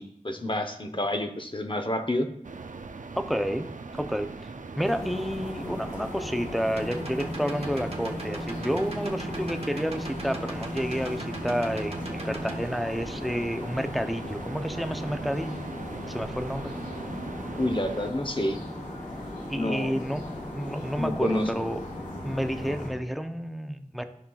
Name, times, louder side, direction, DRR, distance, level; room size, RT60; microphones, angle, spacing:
voice 1, 0.0-2.3 17.6-18.6 19.5-20.0 21.0-21.5, left 1 dB, 40° left, 6 dB, 0.8 m, -29 dB
sound 1, 2.4-18.1, right 4 dB, 75° right, 0.5 m, -41 dB
voice 2, 3.2-3.7 4.0-4.3 4.8-15.6 16.1-16.7 19.5-21.8 22.2-24.0, equal, ahead, 8 dB, 0.6 m, -30 dB
sound 2, 4.8-22.9, left 1 dB, 80° left, 2.5 m, -38 dB
sound 3, 6.7-12.6, right 1 dB, 50° right, 1.0 m, -37 dB
13.0 x 5.5 x 2.4 m, 0.77 s
wide cardioid pair, 50°, 13 cm